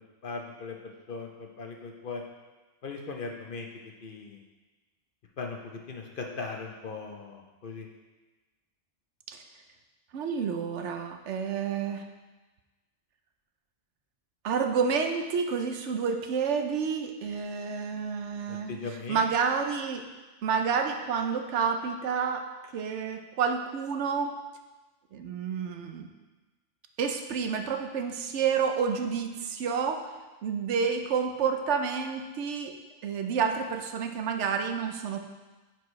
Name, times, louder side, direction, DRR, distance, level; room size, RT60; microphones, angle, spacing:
voice 1, 0.0-2.2 2.8-3.7 4.0-4.4 5.4-7.9 18.5-19.2, left 4 dB, 55° left, 2 dB, 0.8 m, -39 dB
voice 2, 10.1-12.1 14.4-18.7 19.1-20.0 20.4-22.5 22.7-24.3 25.1-26.1 27.0-30.1 30.4-32.7 33.0-35.2, right 6 dB, 75° right, 6 dB, 0.9 m, -29 dB
9.3 x 4.6 x 3.1 m, 1.2 s
omnidirectional pair, 1.2 m